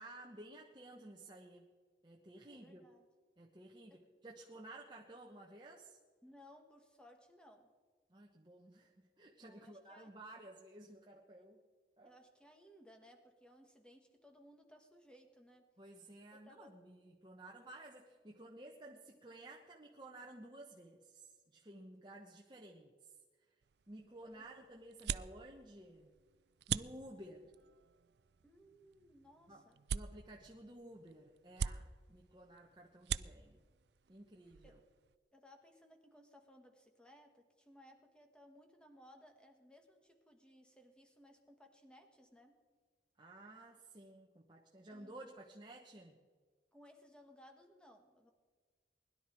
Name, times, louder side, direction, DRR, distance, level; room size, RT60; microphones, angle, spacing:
voice 1, 0.0-1.7 2.0-2.8 3.4-6.0 8.1-11.6 12.0-12.1 15.8-23.1 23.9-26.1 26.7-27.5 29.5-29.6 29.9-33.6 34.1-34.8 43.2-46.2, right 1 dB, 25° right, 0 dB, 1.2 m, -54 dB
voice 2, 2.5-3.1 3.9-4.0 6.2-7.7 9.4-10.1 11.3-11.4 12.0-15.7 16.3-16.7 24.3-24.5 28.4-29.8 34.6-34.8 35.3-42.6 44.9-45.4 46.7-48.3, equal, 5° left, 4 dB, 1.6 m, -62 dB
sound 1, 23.6-35.2, right 7 dB, 75° right, 0.4 m, -45 dB
21.0 x 11.5 x 4.6 m, 1.5 s
head